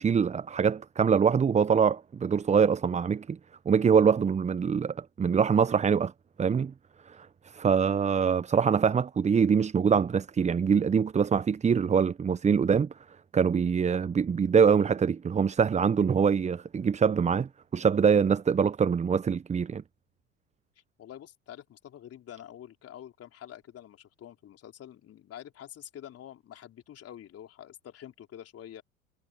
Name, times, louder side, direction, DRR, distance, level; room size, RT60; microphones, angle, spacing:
voice 1, 0.0-3.4 3.7-6.1 6.4-6.7 7.1-12.9 13.3-19.8, right 6 dB, 15° right, 0.9 m, -24 dB
voice 2, 21.0-28.8, left 10 dB, 35° left, 4.1 m, -47 dB
figure-of-eight pair, 75°, 40 cm